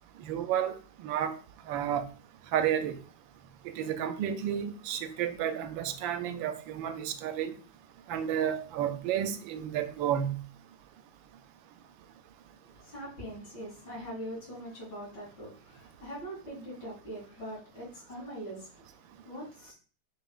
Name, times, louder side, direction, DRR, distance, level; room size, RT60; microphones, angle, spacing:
voice 1, 0.2-1.4 1.7-2.0 2.5-3.0 3.6-7.6 8.1-10.4, right 9 dB, 85° right, 1.3 m, -31 dB
voice 2, 12.6-19.7, equal, 65° left, 3.2 m, -42 dB
6.6 x 3.2 x 2.4 m
omnidirectional pair, 2.1 m